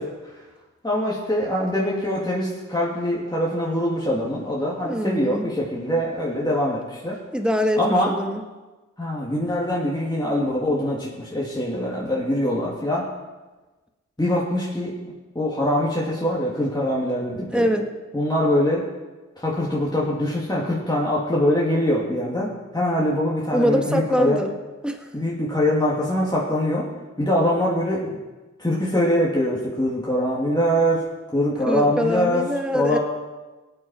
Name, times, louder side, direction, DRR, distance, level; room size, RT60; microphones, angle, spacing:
voice 1, 0.8-7.2 7.8-8.1 9.0-13.1 14.2-14.9 15.3-17.7 18.1-18.8 19.4-24.4 25.1-26.9 27.2-28.2 28.6-31.1 31.3-32.4 32.7-33.0, left 1 dB, 15° left, -5 dB, 2.5 m, -23 dB
voice 2, 4.8-5.5 7.3-7.8 8.1-8.4 17.5-17.9 23.5-24.5 24.8-25.1 31.7-33.0, equal, 5° right, 4 dB, 1.7 m, -23 dB
17.5 x 8.9 x 4.4 m, 1.2 s
cardioid pair, 40°, 31 cm